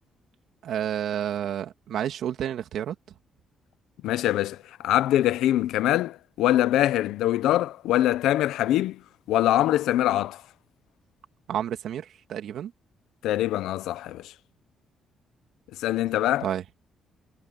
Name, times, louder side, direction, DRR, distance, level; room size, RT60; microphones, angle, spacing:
voice 1, 0.6-2.9 11.5-12.7 16.4-16.6, right 10 dB, 70° right, 2.9 m, -30 dB
voice 2, 4.0-4.6 4.8-9.0 9.3-10.4 13.2-14.3 15.8-16.5, left 13 dB, 90° left, 1.0 m, -23 dB
cardioid pair, 90°, 0 cm